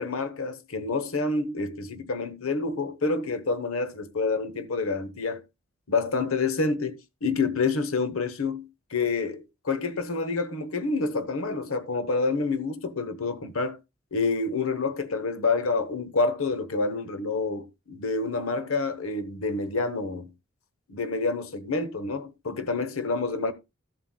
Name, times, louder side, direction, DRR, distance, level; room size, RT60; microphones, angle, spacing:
voice 1, 0.0-5.4 5.9-13.8 14.1-20.3 20.9-23.5, left 3 dB, 75° left, 1.0 m, -28 dB
13.0 x 7.6 x 2.2 m
head